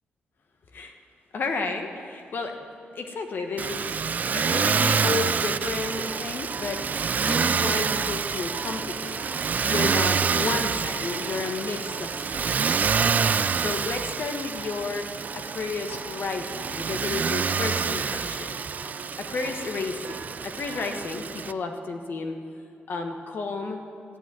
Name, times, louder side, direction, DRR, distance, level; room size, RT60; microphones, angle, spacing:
voice 1, 1.3-2.6 2.9-4.0 4.3-9.3 9.7-12.4 13.6-15.1 15.3-18.5 19.2-22.3 22.9-23.8, left 4 dB, 60° left, 4 dB, 1.2 m, -32 dB
Motor vehicle (road), 3.6-21.5, right 6 dB, 45° right, 0.4 m, -27 dB
sound 1, 5.8-11.6 11.8-14.9 15.2-16.3 16.6-17.0 17.3-19.1 19.4-21.1, right 4 dB, 80° right, 2.2 m, -43 dB
14.5 x 8.6 x 9.4 m, 2.4 s
cardioid pair, 105°, 4 cm